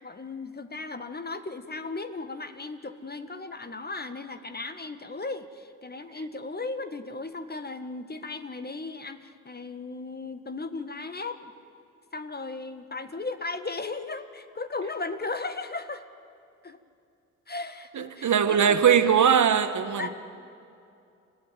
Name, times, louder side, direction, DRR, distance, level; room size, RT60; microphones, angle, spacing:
voice 1, 0.0-11.5 12.1-16.0 16.6-16.8 17.5-19.1 20.0-20.1, left 3 dB, 25° left, 10 dB, 1.7 m, -36 dB
voice 2, 17.9-20.1, right 8 dB, 45° right, 10 dB, 1.6 m, -21 dB
29.0 x 15.5 x 9.3 m, 2.5 s
figure-of-eight pair, 45°, 41 cm